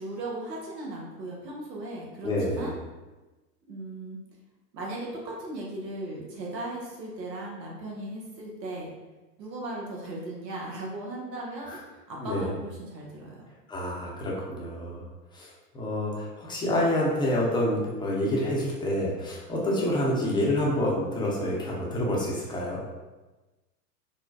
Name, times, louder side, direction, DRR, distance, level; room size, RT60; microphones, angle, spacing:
voice 1, 0.0-2.8 3.7-4.2 4.7-8.9 9.4-13.4, right 1 dB, 85° right, -3 dB, 1.0 m, -37 dB
voice 2, 2.2-2.7 11.7-11.8 12.2-12.5 13.7-15.0 15.3-22.8, left 1 dB, 10° left, -4 dB, 0.6 m, -28 dB
4.0 x 2.1 x 2.4 m, 1.1 s
hypercardioid pair, 95°, 49 cm